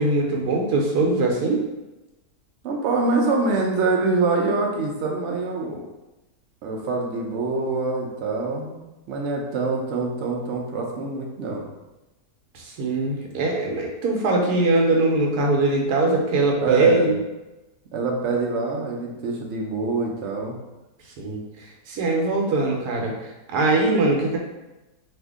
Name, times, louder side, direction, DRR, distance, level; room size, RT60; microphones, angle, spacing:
voice 1, 0.0-1.6 12.5-17.2 21.2-21.4 21.9-24.4, right 2 dB, 85° right, 0 dB, 1.2 m, -21 dB
voice 2, 2.6-5.8 6.6-11.6 16.6-17.1 17.9-20.5, right 3 dB, 65° right, -1 dB, 0.7 m, -25 dB
2.8 x 2.5 x 3.5 m, 1.0 s
omnidirectional pair, 1.7 m